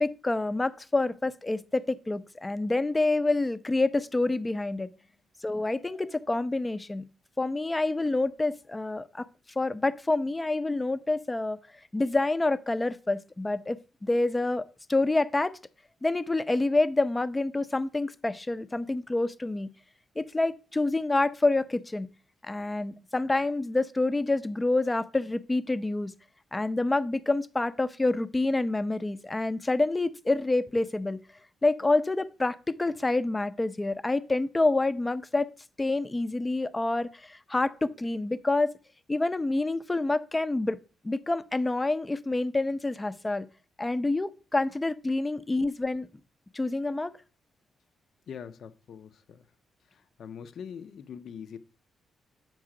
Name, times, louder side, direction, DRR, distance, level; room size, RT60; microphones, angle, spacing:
voice 1, 0.0-4.9 5.4-7.1 7.4-9.3 9.6-11.6 11.9-15.5 16.0-19.7 20.2-22.1 22.4-26.1 26.5-31.2 31.6-35.5 35.8-38.7 39.1-40.8 41.0-43.5 43.8-46.1 46.5-47.1, left 2 dB, 15° left, 0.5 m, -27 dB
voice 2, 48.3-49.5 49.9-51.6, left 7 dB, 65° left, 0.6 m, -43 dB
7.5 x 5.4 x 4.8 m
cardioid pair, 90°, 0 cm